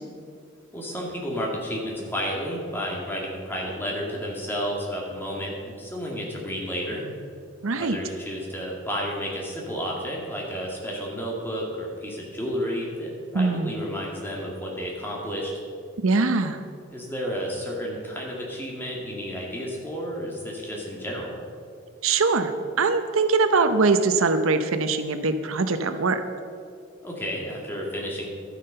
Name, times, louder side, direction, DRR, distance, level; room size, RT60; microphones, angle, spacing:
voice 1, 0.7-7.0 7.8-15.5 16.9-21.4 27.0-28.3, equal, 10° left, -3 dB, 2.1 m, -31 dB
voice 2, 7.6-8.0 13.3-13.8 16.0-16.6 22.0-22.5 22.8-26.2, right 4 dB, 85° right, 9 dB, 0.7 m, -22 dB
12.0 x 9.0 x 5.5 m, 2.3 s
head